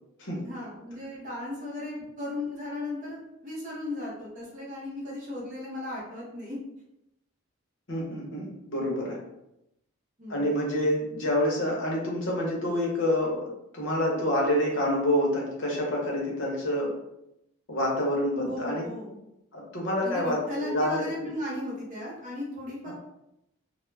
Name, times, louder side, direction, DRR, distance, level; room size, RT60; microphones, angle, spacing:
voice 1, 0.4-6.6 10.2-10.5 18.4-19.2 20.0-22.9, left 1 dB, 35° right, -4 dB, 0.7 m, -36 dB
voice 2, 7.9-9.2 10.3-13.4 13.7-16.9 17.7-18.9 19.5-21.3 22.8-22.9, left 1 dB, 55° left, -3 dB, 0.7 m, -27 dB
2.2 x 2.0 x 3.1 m, 0.85 s
head